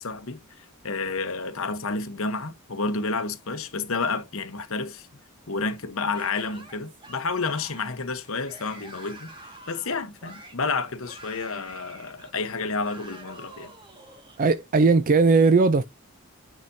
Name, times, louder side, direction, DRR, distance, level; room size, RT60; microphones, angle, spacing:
voice 1, 0.0-5.1 5.5-9.3 9.7-13.7, left 4 dB, 65° left, 1.0 m, -30 dB
Yell / Screaming, 6.1-14.4, right 1 dB, 20° right, 1.8 m, -47 dB
voice 2, 14.4-15.8, right 4 dB, 40° right, 0.4 m, -18 dB
9.6 x 4.8 x 2.7 m
head